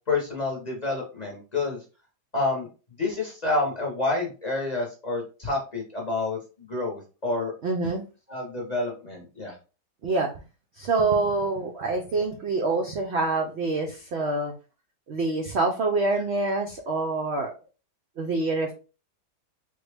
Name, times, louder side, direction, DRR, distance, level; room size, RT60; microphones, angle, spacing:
voice 1, 0.1-1.8 2.3-2.7 3.0-7.5 8.3-9.5, left 2 dB, 35° left, -2 dB, 0.7 m, -28 dB
voice 2, 7.6-8.0 10.0-10.3 10.8-14.5 15.1-17.5 18.2-18.7, right 3 dB, 80° right, 3 dB, 0.6 m, -26 dB
3.3 x 2.2 x 3.3 m, 0.33 s
omnidirectional pair, 1.7 m